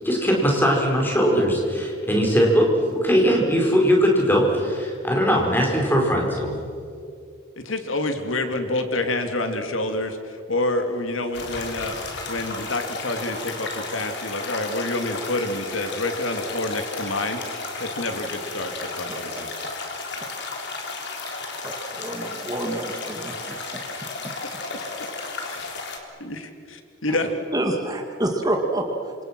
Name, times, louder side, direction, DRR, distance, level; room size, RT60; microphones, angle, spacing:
voice 1, 0.0-6.6, equal, 10° left, -1 dB, 5.0 m, -20 dB
voice 2, 7.6-11.9 12.3-17.4 17.8-19.5 25.5-25.7 26.2-27.3, left 2 dB, 75° left, 6 dB, 2.5 m, -28 dB
sound 1, 11.3-26.0, left 3 dB, 55° left, 3.8 m, -33 dB
voice 3, 21.6-23.6 27.1-27.2 27.5-29.2, right 1 dB, 20° right, 2 dB, 2.1 m, -27 dB
28.5 x 26.5 x 6.1 m, 2.5 s
head